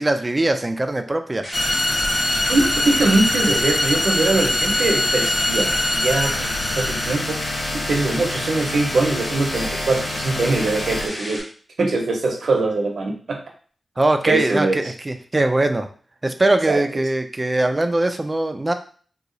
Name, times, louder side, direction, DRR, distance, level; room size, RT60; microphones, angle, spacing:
voice 1, 0.0-1.5 14.0-15.9 16.2-18.7, right 2 dB, 25° right, 7 dB, 0.4 m, -21 dB
sound 1, 1.4-11.4, left 1 dB, 25° left, 1.5 m, -32 dB
sound 2, 1.5-11.1, left 1 dB, 45° left, 0.7 m, -24 dB
voice 2, 2.5-7.4 7.9-11.4 11.8-13.4 14.2-14.8 16.7-16.8, right 2 dB, 75° right, 2 dB, 0.7 m, -22 dB
2.9 x 2.3 x 3.8 m, 0.43 s
wide cardioid pair, 80°, 0 cm